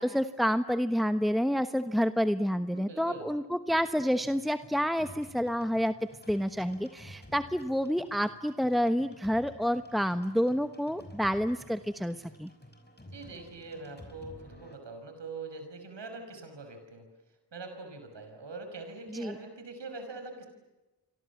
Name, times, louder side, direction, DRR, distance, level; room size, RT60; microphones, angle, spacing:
voice 1, 0.0-5.9 6.3-12.5 19.1-19.3, equal, ahead, 10 dB, 1.1 m, -29 dB
voice 2, 2.7-3.3 13.1-17.1 17.5-20.5, right 3 dB, 85° right, 6 dB, 5.9 m, -43 dB
sound 1, 3.7-14.8, left 1 dB, 25° left, 5.7 m, -52 dB
29.5 x 24.5 x 7.2 m, 1.1 s
cardioid pair, 40°, 42 cm